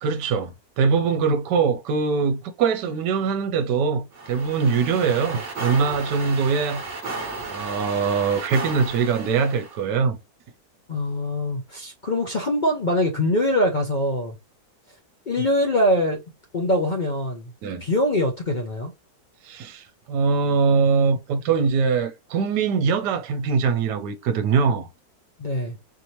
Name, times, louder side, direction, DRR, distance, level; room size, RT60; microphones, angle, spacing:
voice 1, 0.0-6.8 7.4-10.2 15.4-15.5 17.6-17.8 19.4-24.9, right 5 dB, 75° right, 1.3 m, -22 dB
sound 1, 4.1-9.8, right 3 dB, 45° right, 1.2 m, -34 dB
voice 2, 10.9-14.3 15.3-16.2 16.5-17.5 17.8-18.9 25.4-25.8, left 1 dB, 70° left, 0.4 m, -23 dB
4.4 x 2.8 x 3.0 m
omnidirectional pair, 1.9 m